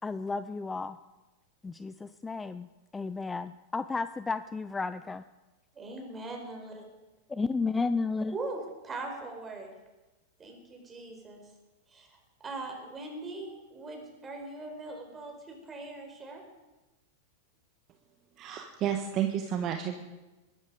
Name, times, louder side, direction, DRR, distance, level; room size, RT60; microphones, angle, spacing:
voice 1, 0.0-1.0 1.6-2.7 2.9-5.2 7.3-8.3, left 4 dB, 15° left, 14 dB, 0.5 m, -32 dB
voice 2, 5.7-6.8 8.3-9.7 10.4-11.4 11.9-16.4, right 2 dB, 20° right, 2 dB, 4.7 m, -41 dB
voice 3, 18.4-20.0, right 9 dB, 40° right, 5 dB, 1.4 m, -31 dB
22.0 x 11.5 x 5.1 m, 1.1 s
figure-of-eight pair, 95°, 0 cm